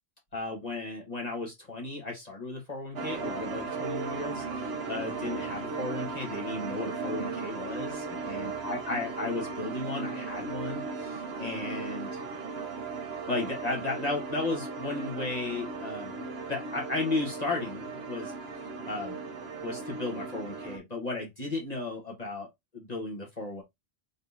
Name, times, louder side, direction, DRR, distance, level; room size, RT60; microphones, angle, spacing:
voice 1, 0.3-12.2 13.3-16.2 16.5-19.2 19.6-22.5 22.7-23.6, left 2 dB, 40° left, 1.4 m, -35 dB
sound 1, 3.0-20.8, right 4 dB, 80° right, 1.1 m, -36 dB
4.1 x 3.6 x 2.6 m
omnidirectional pair, 1.0 m